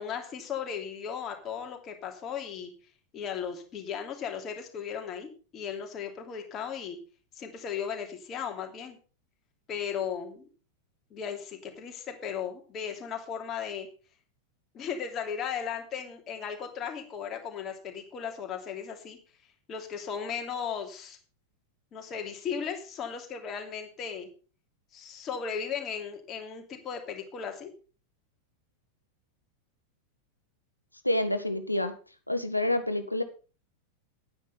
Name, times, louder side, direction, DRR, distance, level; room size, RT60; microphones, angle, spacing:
voice 1, 0.0-2.7 3.1-7.0 7.3-9.0 9.7-10.5 11.1-13.9 14.7-19.2 19.7-21.2 21.9-24.3 24.9-27.7, left 7 dB, 30° left, 3 dB, 3.0 m, -36 dB
voice 2, 31.0-31.9 32.3-33.2, left 1 dB, 85° left, 9 dB, 1.4 m, -28 dB
10.5 x 9.7 x 5.5 m, 0.36 s
figure-of-eight pair, 90°, 0 cm